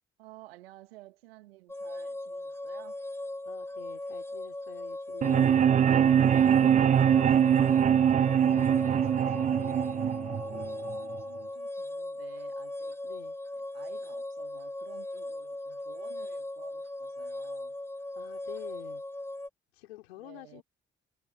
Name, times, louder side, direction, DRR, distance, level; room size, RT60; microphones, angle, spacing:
voice 1, 0.2-3.0 6.6-8.2 8.7-13.0 13.5-17.8 20.2-20.6, right 17 dB, 80° right, 2.2 m, -53 dB
sound 1, 1.7-19.5, left 1 dB, 10° left, 0.9 m, -38 dB
voice 2, 3.4-5.6 7.4-7.7 10.5-10.7 13.0-13.4 18.1-19.0 19.7-20.6, left 17 dB, 80° left, 5.1 m, -48 dB
sound 2, 5.2-11.2, right 9 dB, 25° right, 0.3 m, -23 dB
figure-of-eight pair, 45°, 30 cm